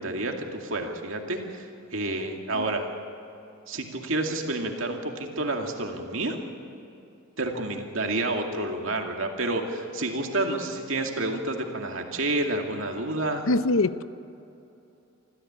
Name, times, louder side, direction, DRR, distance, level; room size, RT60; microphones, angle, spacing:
voice 1, 0.0-2.9 3.7-6.4 7.4-13.5, right 2 dB, 70° right, 2 dB, 2.4 m, -29 dB
voice 2, 13.5-14.0, left 2 dB, 75° left, 14 dB, 0.7 m, -23 dB
26.0 x 14.5 x 8.9 m, 2.7 s
head